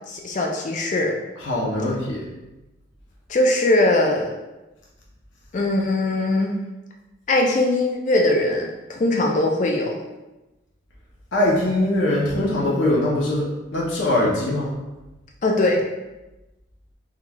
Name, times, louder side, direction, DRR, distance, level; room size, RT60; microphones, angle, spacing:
voice 1, 0.1-1.1 3.3-4.4 5.5-6.6 7.3-10.0 15.4-15.8, left 2 dB, 40° left, 1 dB, 0.3 m, -21 dB
voice 2, 1.4-2.3 11.3-13.4 13.7-14.7, left 1 dB, 65° left, -4 dB, 0.6 m, -21 dB
3.8 x 3.0 x 2.2 m, 1.0 s
head